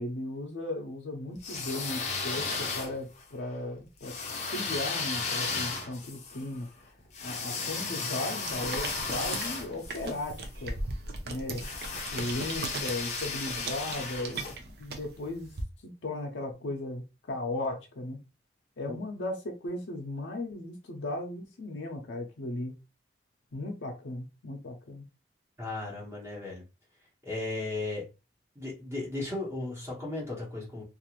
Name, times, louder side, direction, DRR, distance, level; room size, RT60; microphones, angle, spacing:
voice 1, 0.0-4.2 4.5-6.7 7.2-10.8 11.3-11.6 12.1-15.5 15.8-18.2 18.8-22.8 23.5-25.0, left 2 dB, 90° left, 0.6 m, -36 dB
sound 1, 1.3-3.2 4.0-10.4 11.5-14.6, left 4 dB, 40° left, 0.6 m, -35 dB
sound 2, 8.5-15.6, right 3 dB, 60° right, 0.5 m, -39 dB
voice 2, 25.6-26.6 27.2-28.1 28.5-30.8, left 2 dB, 15° right, 1.0 m, -35 dB
2.5 x 2.4 x 2.9 m
head